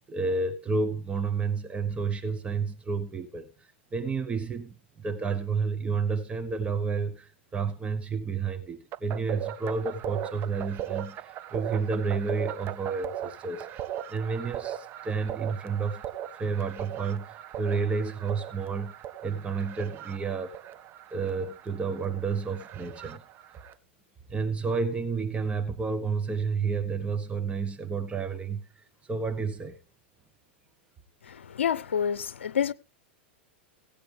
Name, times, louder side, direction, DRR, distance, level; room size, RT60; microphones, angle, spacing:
voice 1, 0.1-3.5 3.9-13.8 14.1-16.0 16.4-18.9 19.2-20.5 21.1-23.2 24.3-28.7 29.1-29.8, right 5 dB, 20° right, 1.3 m, -30 dB
sound 1, 8.9-23.7, right 11 dB, 35° right, 1.0 m, -39 dB
voice 2, 31.3-32.7, left 8 dB, 85° left, 0.6 m, -28 dB
17.0 x 8.6 x 3.4 m
hypercardioid pair, 110°, 6 cm